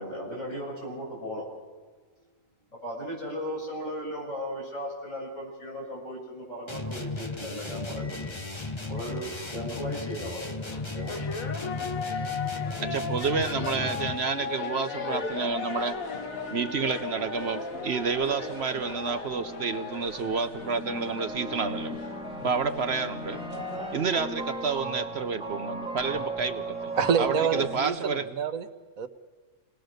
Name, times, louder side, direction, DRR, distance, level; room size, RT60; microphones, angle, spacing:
voice 1, 0.0-1.5 2.7-8.6 8.8-11.6 12.1-12.7, equal, 65° left, -3 dB, 7.4 m, -37 dB
sound 1, 6.7-14.3, left 3 dB, 20° left, 1.3 m, -35 dB
sound 2, 10.6-24.7, left 5 dB, 90° left, 1.7 m, -37 dB
voice 2, 12.8-16.0 16.5-21.9 22.4-23.4 23.9-28.2, right 5 dB, 55° right, 10 dB, 1.0 m, -30 dB
sound 3, 14.9-27.8, right 1 dB, 5° right, 2.9 m, -37 dB
voice 3, 27.0-28.7 29.0-29.1, right 6 dB, 85° right, 10 dB, 1.5 m, -27 dB
28.0 x 20.0 x 6.5 m, 1.4 s
omnidirectional pair, 1.4 m